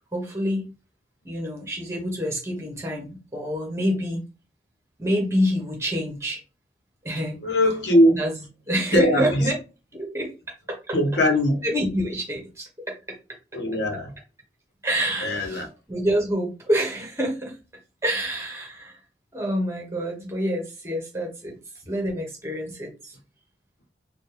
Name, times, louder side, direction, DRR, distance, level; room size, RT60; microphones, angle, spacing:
voice 1, 0.1-0.7 1.2-4.2 5.0-6.4 7.0-7.4 8.2-8.3 8.7-9.5 9.9-11.0 11.6-13.2 14.8-17.6 18.0-19.0 19.3-21.6 21.8-23.2, equal, 15° right, 1.4 m, -27 dB
voice 2, 7.4-8.2 8.9-9.5 10.9-11.6 13.5-14.1 15.2-15.7, left 1 dB, 85° left, 1.2 m, -20 dB
4.2 x 2.6 x 3.5 m
head